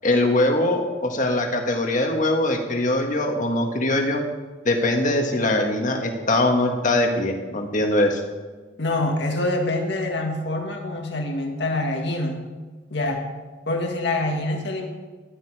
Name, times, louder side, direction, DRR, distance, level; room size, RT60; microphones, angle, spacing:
voice 1, 0.0-4.2 4.7-8.2, left 1 dB, 40° left, 3 dB, 1.8 m, -22 dB
voice 2, 8.8-12.3 12.9-13.2 13.7-14.9, left 2 dB, 60° left, 1 dB, 2.0 m, -25 dB
14.5 x 11.0 x 4.9 m, 1.3 s
head